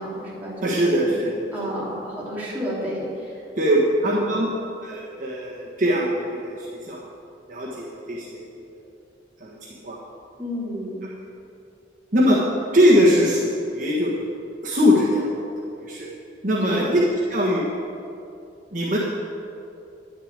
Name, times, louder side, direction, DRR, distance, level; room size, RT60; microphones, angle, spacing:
voice 1, 0.0-1.2 1.5-3.3 4.0-4.4 10.4-11.0 16.6-16.9, equal, 10° right, -8 dB, 3.1 m, -31 dB
voice 2, 0.6-1.7 3.6-4.5 4.8-7.0 7.5-8.8 9.4-10.0 12.1-12.4 12.7-14.3 14.6-15.4 15.8-16.1 16.4-17.0 17.3-17.6 18.7-19.0, equal, 45° right, -5 dB, 1.6 m, -21 dB
10.5 x 6.8 x 8.9 m, 2.6 s
head